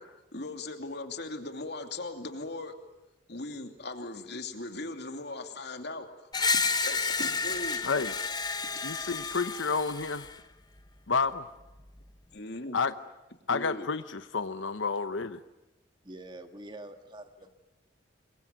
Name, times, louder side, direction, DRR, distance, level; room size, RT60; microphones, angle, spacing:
voice 1, 0.3-2.7 3.3-6.1 6.8-7.9 8.7-8.8 12.3-12.8 13.5-13.9, left 2 dB, 55° left, 6 dB, 2.7 m, -39 dB
Screech, 6.3-10.3, left 4 dB, 20° left, 0.9 m, -31 dB
voice 2, 8.8-10.3 11.1-11.5 12.7-12.9 13.5-15.4, left 4 dB, 75° left, 11 dB, 0.9 m, -30 dB
voice 3, 16.0-17.5, right 1 dB, 25° right, 7 dB, 1.7 m, -45 dB
27.0 x 22.5 x 9.2 m, 1.0 s
head